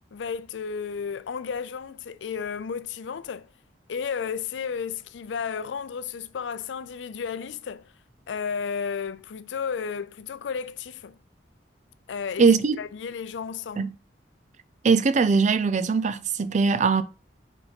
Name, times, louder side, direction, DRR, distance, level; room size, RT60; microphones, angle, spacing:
voice 1, 0.1-3.5 3.9-7.9 8.3-11.2 12.1-12.5 12.8-13.9, left 6 dB, 80° left, 0.4 m, -33 dB
voice 2, 12.4-12.8 13.8-13.9 14.8-17.0, right 5 dB, 40° right, 0.4 m, -21 dB
4.7 x 3.9 x 5.2 m
head